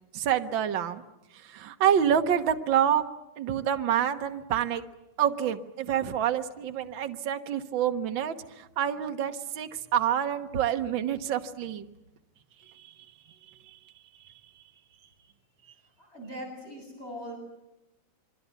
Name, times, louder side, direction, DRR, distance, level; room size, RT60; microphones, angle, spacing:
voice 1, 0.1-1.0 1.4-3.0 3.4-4.8 5.2-11.9 12.7-12.9 14.3-14.4, right 9 dB, 65° right, 7 dB, 1.9 m, -27 dB
voice 2, 16.0-17.4, equal, 25° left, 0 dB, 8.4 m, -40 dB
27.5 x 23.5 x 8.3 m, 0.92 s
omnidirectional pair, 2.4 m